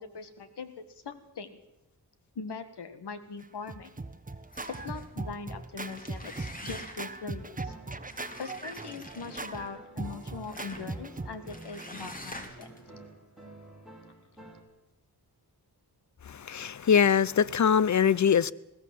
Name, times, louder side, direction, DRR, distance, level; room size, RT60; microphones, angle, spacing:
voice 1, 0.0-1.6 2.4-3.9 4.7-7.7 8.4-12.7, left 5 dB, 85° left, 1.9 m, -41 dB
Scratching (performance technique), 3.4-11.9, right 3 dB, 20° right, 1.2 m, -40 dB
sound 1, 4.5-5.1 5.7-7.2 8.0-9.8 10.5-10.9 11.5-12.8, left 1 dB, 20° left, 3.1 m, -46 dB
sound 2, 7.4-14.6, right 2 dB, ahead, 6.0 m, -51 dB
voice 2, 16.3-18.5, left 7 dB, 45° left, 0.7 m, -23 dB
21.0 x 16.0 x 7.7 m
cardioid pair, 70°, 39 cm